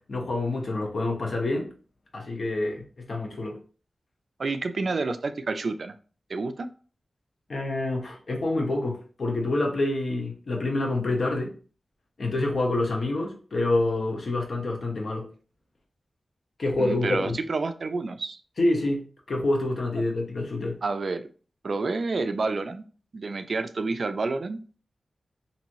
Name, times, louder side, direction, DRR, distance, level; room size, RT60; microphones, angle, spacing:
voice 1, 0.1-1.7 2.1-3.6 7.5-11.5 12.2-15.3 16.6-17.4 18.6-19.0 19.3-20.8, left 2 dB, 65° left, 2 dB, 0.8 m, -27 dB
voice 2, 4.4-5.9 6.3-6.7 16.8-18.4 20.8-21.3 21.6-22.8 23.1-24.6, right 3 dB, 60° right, 9 dB, 0.3 m, -29 dB
3.0 x 2.6 x 2.6 m, 0.38 s
wide cardioid pair, 75°, 0 cm